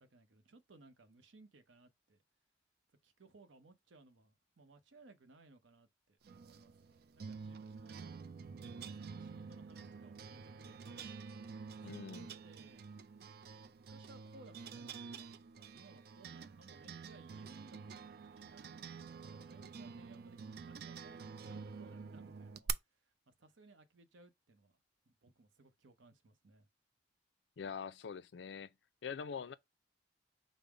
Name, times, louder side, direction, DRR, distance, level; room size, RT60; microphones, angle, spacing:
voice 1, 0.0-2.2 3.0-8.3 8.6-11.2 11.9-12.9 13.6-18.9 19.2-22.7 23.3-24.8 25.1-26.7, right 3 dB, 90° right, 0.8 m, -62 dB
sound 1, 6.2-22.7, right 6 dB, 55° right, 0.4 m, -48 dB
voice 2, 11.8-12.3 27.6-28.7 29.0-29.5, left 6 dB, 65° left, 0.4 m, -44 dB
5.3 x 2.1 x 4.7 m
head